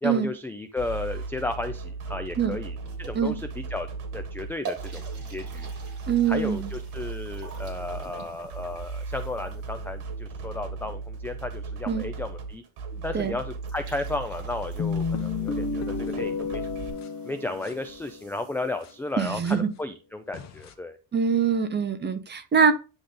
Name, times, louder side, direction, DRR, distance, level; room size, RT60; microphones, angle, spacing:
voice 1, 0.0-3.9 4.1-5.7 6.3-12.6 13.0-16.7 17.2-21.0, left 2 dB, 5° left, 7 dB, 0.4 m, -34 dB
sound 1, 0.8-16.9, right 4 dB, 85° right, 2.0 m, -37 dB
sound 2, 2.9-3.6 4.1-4.2 4.6-9.9 13.3-13.4 13.6-19.1, right 5 dB, 45° right, 3.0 m, -46 dB
voice 2, 6.1-6.7 11.9-12.1 13.1-13.4 19.2-19.7 21.1-22.7, right 6 dB, 25° right, 9 dB, 1.0 m, -23 dB
sound 3, 14.8-18.4 18.8-18.9 19.5-19.6 20.3-20.7, left 5 dB, 40° left, 1.0 m, -31 dB
10.0 x 3.4 x 3.8 m, 0.32 s
cardioid pair, 140°, 41 cm